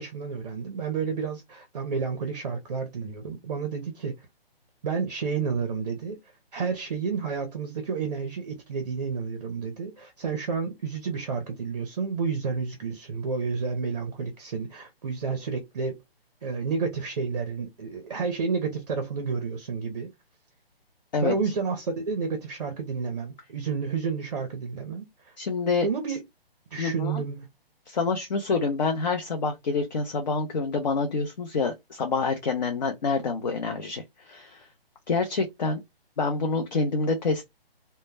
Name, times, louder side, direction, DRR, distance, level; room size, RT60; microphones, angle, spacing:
voice 1, 0.0-4.2 4.8-6.2 6.5-16.0 16.4-20.1 21.2-25.3 25.8-26.2 26.7-27.5, right 5 dB, 40° right, 0.5 m, -30 dB
voice 2, 25.4-25.9 26.8-27.2 27.9-34.7 35.1-35.8 36.2-37.5, left 4 dB, 45° left, 0.5 m, -27 dB
2.1 x 2.0 x 3.2 m
hypercardioid pair, 160°, 31 cm